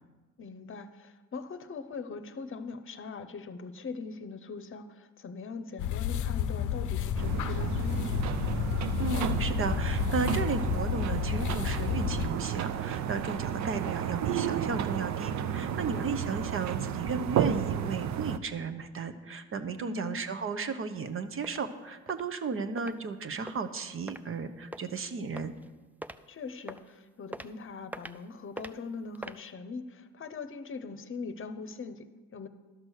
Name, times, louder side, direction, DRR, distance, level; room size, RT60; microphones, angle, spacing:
voice 1, 0.4-8.3 15.8-16.2 19.8-20.2 26.3-32.5, left 4 dB, 45° left, 10 dB, 0.8 m, -41 dB
sound 1, 5.8-12.3, left 9 dB, 80° left, 0.6 m, -31 dB
sound 2, 7.2-18.4, right 9 dB, 65° right, 0.6 m, -32 dB
voice 2, 9.0-25.5, right 5 dB, 45° right, 10 dB, 0.9 m, -34 dB
sound 3, 21.0-21.1 21.4-21.6 22.1-22.2 22.8-22.9 23.5-23.6 24.1-24.2 24.7-24.9 25.4-25.7 26.0-26.2 26.7-26.9 27.3-27.5 27.9-28.2 28.6-28.7 29.2-29.4, right 1 dB, 5° right, 0.4 m, -41 dB
12.0 x 6.1 x 6.5 m, 1.2 s
cardioid pair, 90°, 30 cm